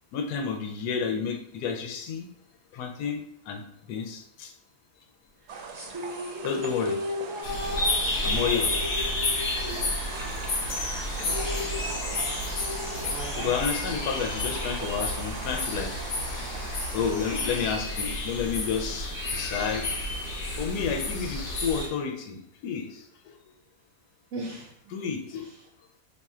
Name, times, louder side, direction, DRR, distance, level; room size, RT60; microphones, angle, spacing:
voice 1, 0.1-2.3 2.7-4.5 6.4-7.0 8.2-8.8 13.3-16.0 16.3-16.5 16.9-19.9 20.6-23.3 24.9-25.5, left 6 dB, 85° left, 5 dB, 1.1 m, -31 dB
sound 1, 5.5-17.7, right 5 dB, 85° right, 1.1 m, -40 dB
sound 2, 5.7-10.4 10.7-10.8 11.1-13.7, left 2 dB, 20° right, 0.7 m, -36 dB
sound 3, 7.4-21.9, left 2 dB, 55° left, 0.9 m, -31 dB
voice 2, 7.7-8.1 9.7-9.9 11.2-12.5 13.0-13.5 24.3-24.7, right 3 dB, 65° right, -3 dB, 1.0 m, -39 dB
2.9 x 2.4 x 4.2 m, 0.73 s
omnidirectional pair, 1.7 m